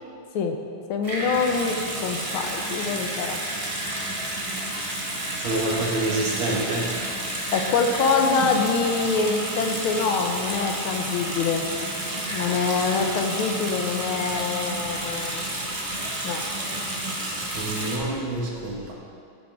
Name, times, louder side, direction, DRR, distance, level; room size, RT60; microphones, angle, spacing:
voice 1, 0.9-3.4 7.5-11.6 12.3-15.4 16.2-16.4, left 5 dB, 85° left, 4 dB, 1.8 m, -25 dB
Water tap faucet / Sink (filling or washing) / Bathtub (filling or washing), 1.0-18.0, right 1 dB, 20° right, 1.1 m, -30 dB
voice 2, 5.3-6.9 17.5-18.9, right 2 dB, 75° right, -3 dB, 2.5 m, -27 dB
13.0 x 9.3 x 3.6 m, 2.3 s
omnidirectional pair, 2.2 m